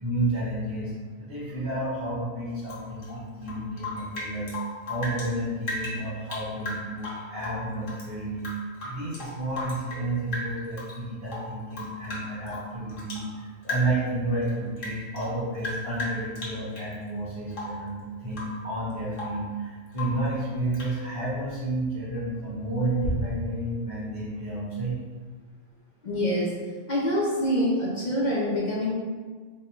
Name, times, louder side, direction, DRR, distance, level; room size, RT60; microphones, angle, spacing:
voice 1, 0.0-0.9 1.2-4.6 4.8-8.5 8.8-25.0, right 1 dB, 25° right, -12 dB, 1.2 m, -31 dB
Rain / Drip, 2.6-5.3 5.6-8.1 8.4-10.1 10.3-11.0 11.3-13.3 13.6-14.1 14.4-16.9 17.5-17.9 18.3-18.6 18.9-19.5 19.9-20.3 20.7-21.0, left 1 dB, 80° left, 1.2 m, -36 dB
voice 2, 26.0-26.5 26.9-28.9, equal, 50° left, -4 dB, 0.6 m, -25 dB
3.4 x 2.2 x 4.2 m, 1.5 s
omnidirectional pair, 1.3 m